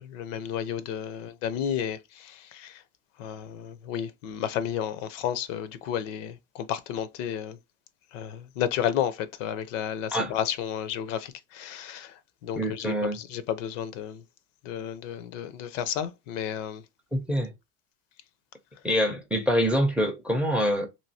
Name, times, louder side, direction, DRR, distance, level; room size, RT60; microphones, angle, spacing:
voice 1, 0.0-2.8 3.2-7.6 8.1-12.1 12.4-14.2 14.6-16.8, left 9 dB, 75° left, 0.6 m, -32 dB
voice 2, 12.6-13.2 17.1-17.5 18.8-20.9, equal, 5° right, 0.4 m, -25 dB
3.0 x 2.6 x 2.6 m
supercardioid pair, 140°, 37 cm